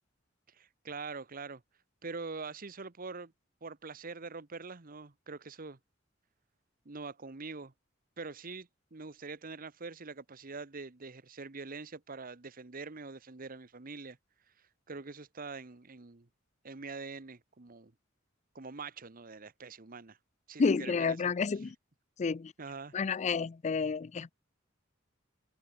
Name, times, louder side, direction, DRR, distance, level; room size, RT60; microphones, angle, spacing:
voice 1, 0.5-1.6 2.0-3.3 3.6-5.8 6.8-7.7 8.2-14.2 14.9-16.3 16.6-17.9 18.5-20.2 20.5-21.2 22.6-23.0, right 4 dB, 45° right, 1.1 m, -44 dB
voice 2, 20.6-21.8 22.2-22.5 22.9-24.3, left 5 dB, 35° left, 0.4 m, -30 dB
head